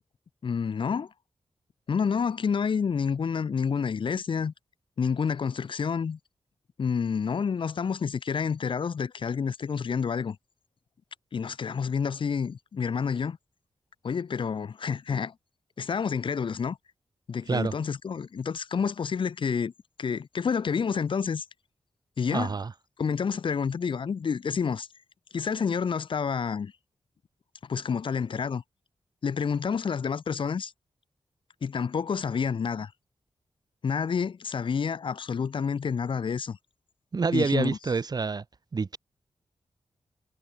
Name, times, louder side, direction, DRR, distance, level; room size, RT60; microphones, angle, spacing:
voice 1, 0.4-1.1 1.9-4.5 5.0-6.2 6.8-10.4 11.3-13.4 14.0-15.3 15.8-16.8 17.3-19.7 20.0-21.4 22.2-22.5 23.0-24.9 25.3-26.7 27.6-28.6 29.2-30.7 31.6-32.9 33.8-36.6 37.3-37.8, left 6 dB, 65° left, 2.0 m, -29 dB
voice 2, 22.3-22.7 37.1-38.4 38.7-39.0, right 4 dB, 45° right, 2.7 m, -27 dB
wide cardioid pair, 110°, 9 cm